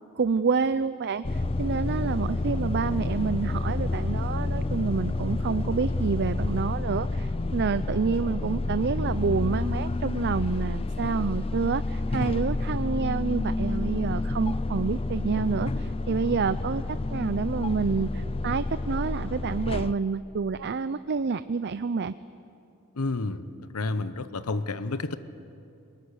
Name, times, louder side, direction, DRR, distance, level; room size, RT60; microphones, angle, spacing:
voice 1, 0.2-22.1, right 5 dB, 50° right, 13 dB, 0.5 m, -28 dB
sound 1, 1.2-19.9, left 2 dB, 25° left, 0.5 m, -29 dB
voice 2, 23.0-23.5 23.7-25.2, left 3 dB, 85° left, 12 dB, 1.0 m, -30 dB
23.0 x 21.0 x 9.9 m, 2.7 s
head